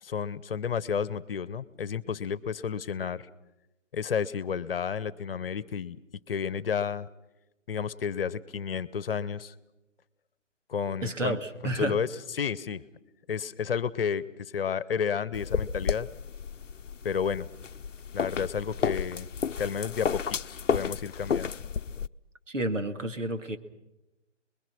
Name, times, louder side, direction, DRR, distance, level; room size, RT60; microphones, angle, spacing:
voice 1, 0.0-3.2 3.9-6.0 6.3-7.1 7.7-9.5 10.7-11.4 11.8-12.1 12.3-12.8 13.3-16.1 17.0-17.5 18.1-19.3 19.6-21.5, left 7 dB, 50° left, 19 dB, 1.0 m, -31 dB
voice 2, 11.0-12.0 22.5-23.6, right 1 dB, 80° right, 8 dB, 2.3 m, -30 dB
sound 1, 15.3-22.1, left 6 dB, 75° left, 0.7 m, -32 dB
28.5 x 21.5 x 6.3 m, 0.98 s
figure-of-eight pair, 140°, 37 cm